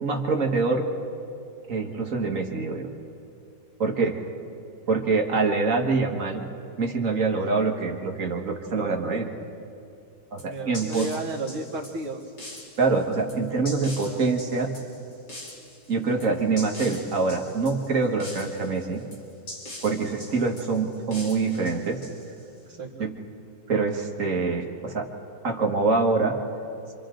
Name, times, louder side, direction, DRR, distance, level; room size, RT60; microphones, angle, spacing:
voice 1, 0.0-0.9 1.7-2.9 3.8-4.2 4.9-6.5 6.8-9.3 10.3-11.1 12.8-14.7 15.9-19.0 19.8-22.0 23.0-23.1 23.7-25.1 25.4-26.4, right 4 dB, 40° right, 2 dB, 1.9 m, -25 dB
sound 1, 10.4-22.6, left 1 dB, 50° left, 4.1 m, -43 dB
voice 2, 10.5-12.3 13.8-14.2 16.2-16.3 22.7-23.1, right 2 dB, 90° right, -8 dB, 2.7 m, -34 dB
28.5 x 26.5 x 3.9 m, 2.6 s
omnidirectional pair, 2.3 m